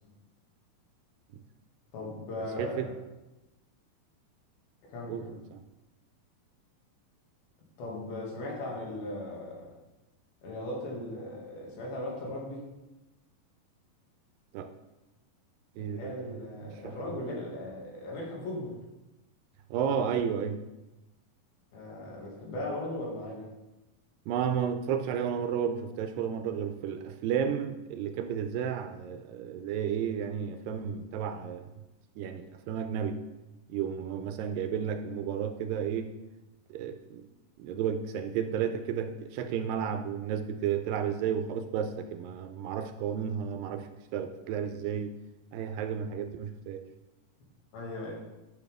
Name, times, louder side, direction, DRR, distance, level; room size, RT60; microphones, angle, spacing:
voice 1, 1.9-2.9 4.9-5.3 7.8-9.7 10.4-12.6 15.8-18.8 21.7-23.5 47.7-48.2, left 1 dB, 85° left, -3 dB, 3.9 m, -38 dB
voice 2, 5.1-5.6 14.5-14.7 15.8-17.2 19.7-20.6 24.3-31.7 32.2-33.2 33.7-36.1 36.7-37.3 37.6-45.1 45.5-46.8, right 8 dB, 80° right, 7 dB, 2.1 m, -32 dB
11.5 x 6.9 x 3.5 m, 1.0 s
omnidirectional pair, 4.2 m